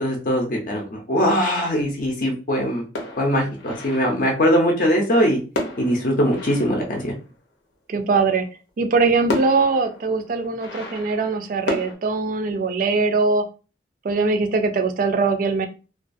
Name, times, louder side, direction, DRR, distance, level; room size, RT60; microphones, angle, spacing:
voice 1, 0.0-2.8 3.2-5.4 5.8-7.1, equal, 50° left, 0 dB, 0.5 m, -21 dB
sound 1, 3.0-4.4 5.5-7.5 8.7-8.8 9.3-11.9, left 1 dB, 90° left, 0.7 m, -32 dB
voice 2, 7.9-8.5 8.8-13.4 14.0-15.7, right 4 dB, 50° right, 7 dB, 0.3 m, -21 dB
2.3 x 2.3 x 2.5 m, 0.34 s
head